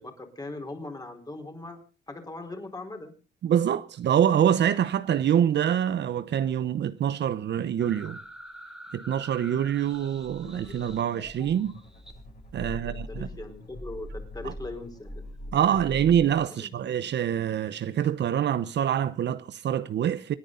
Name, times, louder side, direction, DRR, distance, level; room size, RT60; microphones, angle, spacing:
voice 1, 0.0-1.8 2.1-3.1 12.5-15.1 15.5-15.6 16.5-16.7, left 2 dB, 20° left, 4.6 m, -40 dB
voice 2, 3.4-8.2 8.9-11.8 12.5-13.3 14.4-14.5 15.5-20.3, right 9 dB, 60° right, 0.9 m, -25 dB
sound 1, 7.8-11.7 12.1-16.2, equal, ahead, 2.6 m, -42 dB
sound 2, 10.4-16.1, left 2 dB, 45° left, 5.1 m, -50 dB
27.5 x 9.8 x 3.9 m
cardioid pair, 90°, 20 cm